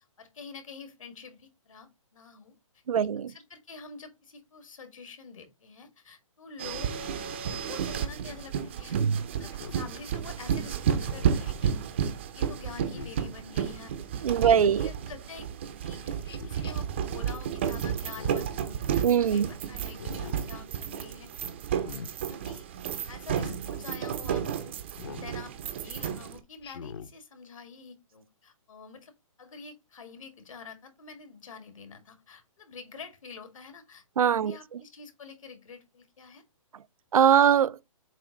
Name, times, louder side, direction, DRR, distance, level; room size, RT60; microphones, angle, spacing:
voice 1, 0.2-2.5 3.3-7.0 7.4-11.7 12.3-15.5 15.8-16.2 16.4-21.3 22.3-22.6 23.1-29.1 29.4-34.0 34.3-36.4, left 5 dB, 70° left, 1.9 m, -47 dB
voice 2, 2.9-3.3 8.9-9.2 14.2-14.9 19.0-19.5 34.2-34.8 37.1-37.8, right 8 dB, 85° right, 0.5 m, -22 dB
sound 1, 6.6-26.4, right 8 dB, 20° right, 0.5 m, -32 dB
Speech synthesizer, 9.5-9.9 11.0-11.5 12.9-13.2 14.4-14.9 16.3-16.7 18.0-18.6 19.9-20.4 21.7-22.1 23.3-23.6 25.0-25.3 26.6-27.1, left 6 dB, 45° left, 0.8 m, -43 dB
7.5 x 2.6 x 5.0 m
hypercardioid pair, 170°, 18 cm